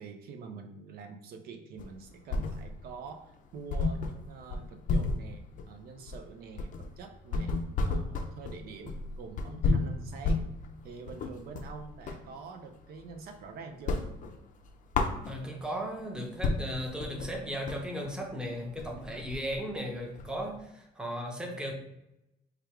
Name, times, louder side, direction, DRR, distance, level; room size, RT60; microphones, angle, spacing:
voice 1, 0.0-7.5 7.8-10.5 10.8-14.0, right 5 dB, 65° right, 5 dB, 0.5 m, -46 dB
sound 1, 1.8-3.0 3.3-3.4 3.7-12.3 12.7-13.4 13.7-15.7 16.1-16.2 16.4-20.6, left 3 dB, 50° left, 0.5 m, -32 dB
voice 2, 15.3-21.7, equal, 5° right, 0 dB, 0.7 m, -36 dB
3.3 x 2.3 x 4.4 m, 0.85 s
cardioid pair, 110°, 17 cm